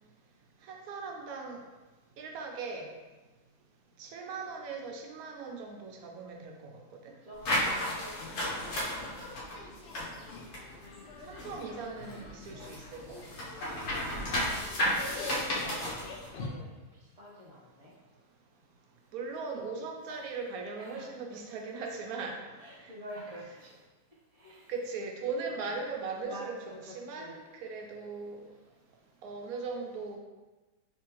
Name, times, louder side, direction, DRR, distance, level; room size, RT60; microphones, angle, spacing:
voice 1, 0.6-1.6 2.2-2.9 4.0-7.1 11.2-13.2 19.1-22.4 22.8-22.9 24.7-26.6 26.9-28.5 29.2-30.2, right 4 dB, 75° right, 2 dB, 1.0 m, -39 dB
voice 2, 7.2-9.7 10.0-10.1 13.8-16.7 17.0-17.9 20.8-21.1 22.6-23.7 24.4-24.7 25.4-25.7 26.2-27.4, equal, 40° right, -5 dB, 0.5 m, -48 dB
sound 1, 7.4-11.7 12.0-16.3, equal, 85° left, 1.4 m, -33 dB
sound 2, 8.2-16.5, left 3 dB, 65° left, 0.6 m, -46 dB
3.4 x 3.1 x 3.0 m, 1.2 s
omnidirectional pair, 1.6 m